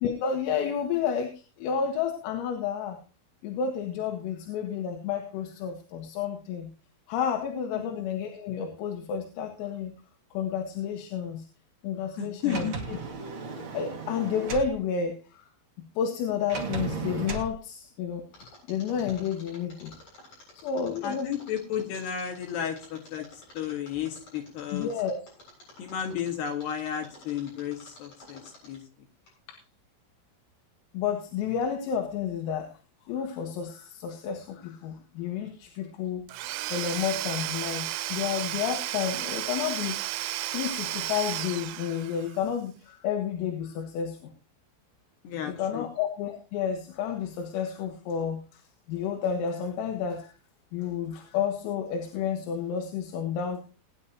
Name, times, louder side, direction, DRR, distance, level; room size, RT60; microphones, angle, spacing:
voice 1, 0.0-3.0 3.4-6.7 7.1-9.9 10.3-11.5 11.8-13.0 13.4-13.5 13.7-15.5 16.0-18.2 18.7-19.9 20.6-21.3 24.7-25.2 29.5-29.6 30.9-32.7 33.1-36.3 36.7-40.0 40.3-44.3 45.5-48.6 48.9-50.3 50.7-53.6, left 7 dB, 85° left, 3 dB, 4.1 m, -31 dB
voice 2, 12.2-12.8 21.0-23.2 23.5-24.9 25.8-28.8 45.2-45.9, left 8 dB, 60° left, 3 dB, 3.5 m, -33 dB
Sliding door, 12.4-14.7 16.5-17.5, right 4 dB, 45° right, 1.6 m, -35 dB
Mechanisms, 18.3-28.9 29.3-29.4, left 2 dB, 35° left, 8.9 m, -51 dB
Domestic sounds home sounds / Tools, 36.3-42.4, right 15 dB, 85° right, 3.3 m, -33 dB
20.0 x 9.9 x 3.0 m, 0.34 s
omnidirectional pair, 5.8 m